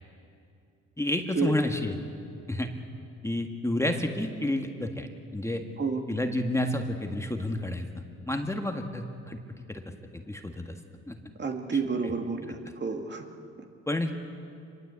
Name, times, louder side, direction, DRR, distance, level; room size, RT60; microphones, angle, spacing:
voice 1, 1.0-1.9 2.5-2.7 3.2-5.6 6.1-7.9 8.3-9.4 9.7-9.8 10.1-10.7 11.1-11.2 12.0-12.1 13.9-14.1, left 1 dB, 10° left, 4 dB, 1.8 m, -30 dB
voice 2, 11.4-13.3, right 4 dB, 35° right, 4 dB, 2.3 m, -30 dB
25.5 x 22.0 x 8.4 m, 2.6 s
cardioid pair, 90°, 30 cm